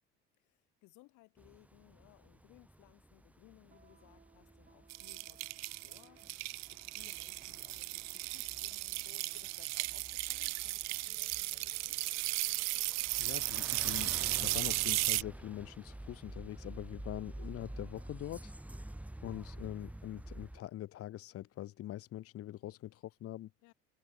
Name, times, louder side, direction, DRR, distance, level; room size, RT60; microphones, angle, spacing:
voice 1, 0.4-6.2 6.5-12.0 23.6-23.7, left 23 dB, 75° left, 3.4 m, -63 dB
sound 1, 1.4-20.6, right 1 dB, 5° right, 1.8 m, -50 dB
sound 2, 2.9-18.1, right 5 dB, 30° right, 7.6 m, -66 dB
sound 3, 4.9-15.2, right 22 dB, 65° right, 0.5 m, -36 dB
voice 2, 13.2-18.5 19.2-23.5, left 13 dB, 50° left, 0.9 m, -44 dB
supercardioid pair, 85°, 30 cm